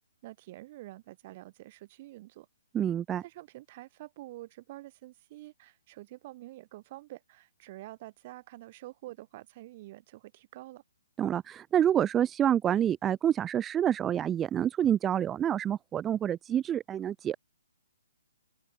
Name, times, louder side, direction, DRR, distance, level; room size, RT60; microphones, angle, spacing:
voice 1, 0.2-2.5 3.2-10.8, right 17 dB, 35° right, 6.9 m, -47 dB
voice 2, 2.7-3.2 11.2-17.4, right 10 dB, 15° right, 1.1 m, -27 dB
open air
hypercardioid pair, 160°, 0 cm